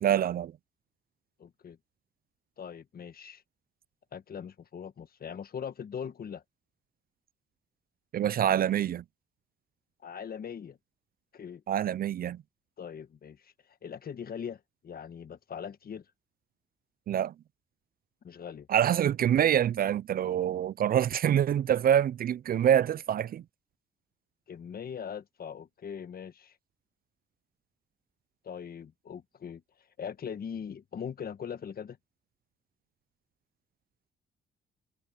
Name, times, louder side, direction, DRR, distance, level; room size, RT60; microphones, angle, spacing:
voice 1, 0.0-0.5 8.1-9.0 11.7-12.4 17.1-17.3 18.7-23.4, right 10 dB, 50° right, 0.4 m, -26 dB
voice 2, 1.4-1.8 2.6-3.4 4.1-6.4 10.0-10.8 11.3-11.6 12.8-13.5 13.8-16.0 18.2-18.7 24.5-26.6 28.4-29.6 30.0-32.0, left 7 dB, 50° left, 1.4 m, -41 dB
cardioid pair, 90°, 20 cm